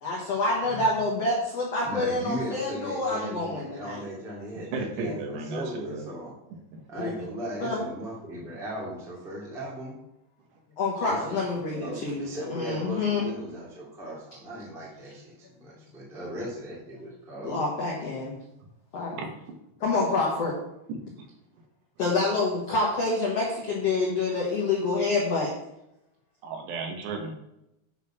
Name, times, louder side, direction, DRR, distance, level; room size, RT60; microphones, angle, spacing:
voice 1, 0.0-4.0 6.9-7.1 7.6-7.8 10.8-13.3 17.4-18.3 18.9-19.1 19.8-20.5 22.0-25.5, left 3 dB, 75° left, 1.4 m, -27 dB
voice 2, 1.8-6.3 6.9-10.0 11.0-11.5 11.7-17.6, equal, ahead, 0.9 m, -37 dB
voice 3, 4.7-6.1 19.1-19.3 26.4-27.3, right 3 dB, 75° right, 3.2 m, -34 dB
9.1 x 4.2 x 5.8 m
omnidirectional pair, 5.1 m